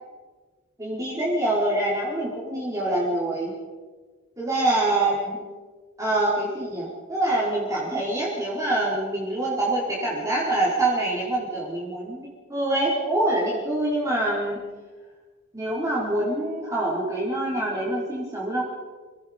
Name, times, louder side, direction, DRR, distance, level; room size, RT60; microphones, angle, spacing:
voice 1, 0.8-3.5 4.4-5.4 6.0-14.6 15.5-18.6, right 1 dB, 15° right, -5 dB, 4.8 m, -25 dB
28.5 x 17.5 x 5.3 m, 1.4 s
head